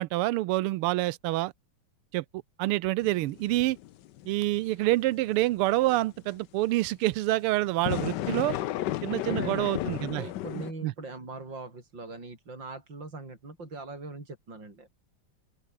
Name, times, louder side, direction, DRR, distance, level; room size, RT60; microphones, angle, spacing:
voice 1, 0.0-1.5 2.1-2.2 2.6-3.8 4.3-8.6 9.0-10.2 10.5-10.9, right 17 dB, 85° right, 1.5 m, -27 dB
sound 1, 3.0-6.3 7.7-10.7, left 14 dB, 70° left, 1.1 m, -34 dB
voice 2, 9.3-14.9, right 3 dB, 55° right, 6.9 m, -41 dB
open air
omnidirectional pair, 2.4 m